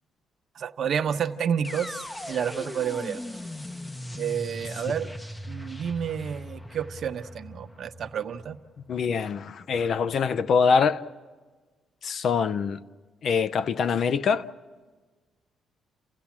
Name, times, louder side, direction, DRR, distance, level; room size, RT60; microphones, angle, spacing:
voice 1, 0.6-3.2 4.2-5.1 5.5-8.6, right 8 dB, 60° right, 0.9 m, -30 dB
sound 1, 1.6-9.6, left 1 dB, 15° left, 0.7 m, -39 dB
voice 2, 8.9-11.0 12.0-12.8 13.2-14.5, left 6 dB, 60° left, 0.6 m, -24 dB
29.0 x 16.0 x 7.3 m
cardioid pair, 90°, 0 cm